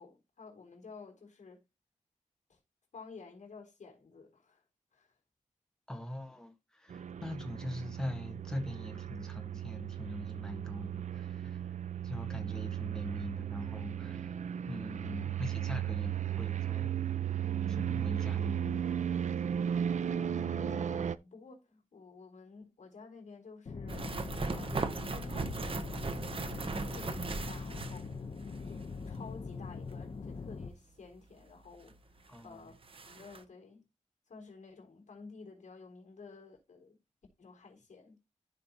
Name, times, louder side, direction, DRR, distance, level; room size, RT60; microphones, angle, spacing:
voice 1, 0.0-1.6 2.5-2.6 2.9-4.6 4.9-5.1 19.9-24.1 24.5-28.2 28.7-32.8 33.0-33.9 34.3-37.0 37.4-38.2, left 4 dB, 70° left, 3.8 m, -52 dB
voice 2, 5.9-11.7 12.0-14.4 14.7-16.9 17.7-18.8 32.3-32.7, left 1 dB, 5° left, 1.5 m, -42 dB
sound 1, 6.9-21.2, right 9 dB, 70° right, 0.5 m, -35 dB
sound 2, 23.7-30.7, left 4 dB, 50° left, 0.9 m, -42 dB
sound 3, 23.9-28.5 28.8-28.9 31.9-32.0 32.3-32.4 32.7-33.4, right 3 dB, 45° right, 0.8 m, -38 dB
14.0 x 5.1 x 2.9 m
wide cardioid pair, 150°, 13 cm